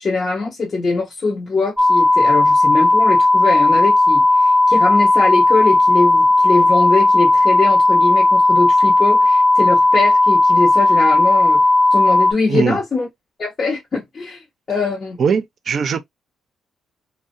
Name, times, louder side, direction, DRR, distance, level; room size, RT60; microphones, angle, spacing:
voice 1, 0.0-11.6 11.9-13.1 13.4-15.2, left 3 dB, 40° left, 0.7 m, -22 dB
sound 1, 1.8-12.3, left 2 dB, 5° left, 0.3 m, -14 dB
voice 2, 12.5-12.8 15.2-16.0, right 6 dB, 55° right, 0.5 m, -20 dB
2.3 x 2.0 x 2.6 m
cardioid pair, 90°, 0 cm